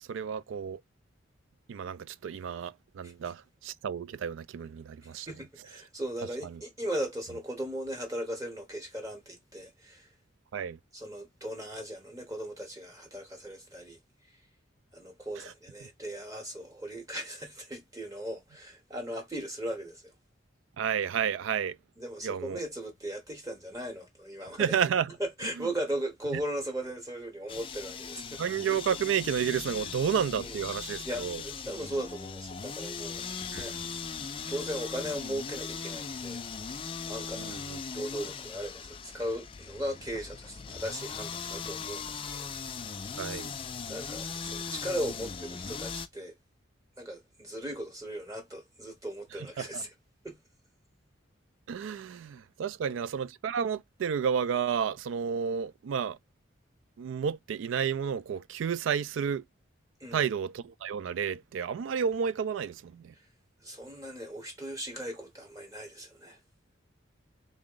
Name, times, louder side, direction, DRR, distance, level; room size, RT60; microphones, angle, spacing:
voice 1, 0.0-0.8 1.7-5.3 6.4-6.6 10.5-10.8 20.8-21.8 22.2-22.6 24.6-25.1 25.6-25.7 28.4-31.4 33.5-33.7 37.5-37.8 43.2-43.5 49.6-49.8 51.7-56.2 57.0-59.4 60.1-63.1, right 7 dB, 75° right, 0.3 m, -31 dB
voice 2, 5.0-10.1 10.9-14.0 14.9-20.1 22.0-24.8 25.2-28.4 29.8-29.9 30.3-30.6 31.0-33.3 33.5-33.7 34.5-37.6 37.9-42.5 43.9-46.4 47.0-49.9 50.2-50.4 52.9-53.0 60.0-60.3 63.6-66.4, right 1 dB, 15° right, 0.9 m, -38 dB
sound 1, 27.5-46.1, left 6 dB, 25° left, 0.3 m, -39 dB
3.6 x 2.1 x 3.6 m
head